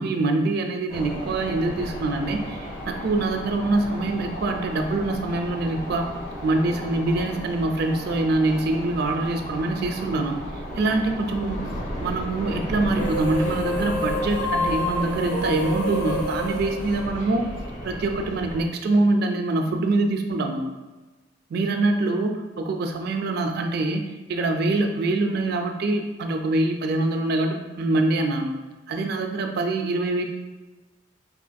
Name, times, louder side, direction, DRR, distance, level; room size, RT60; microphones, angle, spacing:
voice 1, 0.0-6.1 6.4-10.4 10.8-11.6 12.0-17.5 17.8-20.6 21.5-28.5 28.9-30.2, right 2 dB, 55° right, 4 dB, 0.4 m, -24 dB
sound 1, 0.9-18.7, equal, 40° left, 0.8 m, -34 dB
sound 2, 12.9-17.6, left 1 dB, 70° left, 0.9 m, -28 dB
4.7 x 2.5 x 2.2 m, 1.2 s
head